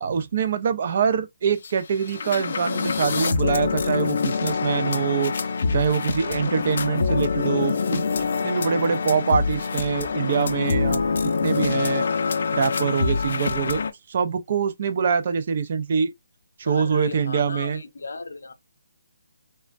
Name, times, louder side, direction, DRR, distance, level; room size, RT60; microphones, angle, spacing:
voice 1, 0.0-5.3 5.7-12.1 12.5-13.8 14.1-16.1 16.6-17.8, right 6 dB, 40° right, 0.4 m, -24 dB
sound 1, 1.6-1.7 2.0-13.9, left 5 dB, 50° left, 0.4 m, -25 dB
voice 2, 16.7-18.5, left 3 dB, 90° left, 0.7 m, -35 dB
3.2 x 2.1 x 2.4 m
hypercardioid pair, 170°, 0 cm